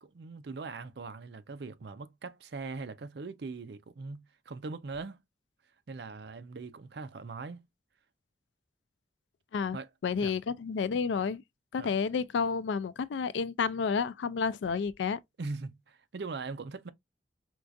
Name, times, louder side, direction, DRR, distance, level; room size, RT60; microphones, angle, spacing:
voice 1, 0.0-5.2 5.9-7.7 9.7-9.9 10.2-10.3 11.8-12.0 15.4-16.9, right 4 dB, 70° right, 0.5 m, -41 dB
voice 2, 10.0-11.4 11.7-15.2, left 5 dB, 85° left, 0.4 m, -30 dB
4.5 x 2.3 x 2.5 m
head